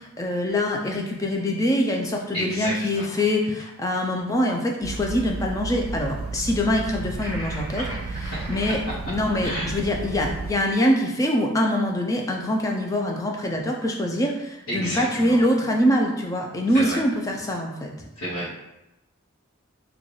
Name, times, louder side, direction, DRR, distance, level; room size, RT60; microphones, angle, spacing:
voice 1, 0.0-7.9 8.2-17.9, left 1 dB, 15° left, 1 dB, 0.3 m, -24 dB
voice 2, 2.3-3.0 7.8-8.5 9.4-9.7 14.7-15.4 16.7-17.0 18.2-18.5, equal, 60° left, -10 dB, 0.8 m, -31 dB
sound 1, 4.8-10.5, right 3 dB, 80° right, 0.4 m, -33 dB
sound 2, 7.2-8.8, right 1 dB, 15° right, 1.1 m, -38 dB
3.1 x 2.3 x 3.8 m, 0.94 s
head